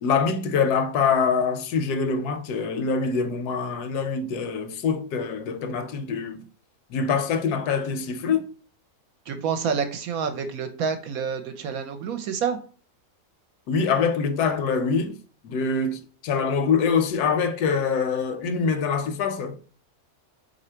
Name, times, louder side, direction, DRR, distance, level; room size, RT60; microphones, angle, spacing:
voice 1, 0.0-6.5 6.9-8.5 13.7-15.2 15.4-19.7, left 5 dB, 75° left, 1.1 m, -24 dB
voice 2, 9.3-12.6, right 6 dB, 70° right, 1.0 m, -28 dB
4.0 x 2.7 x 4.3 m
omnidirectional pair, 1.7 m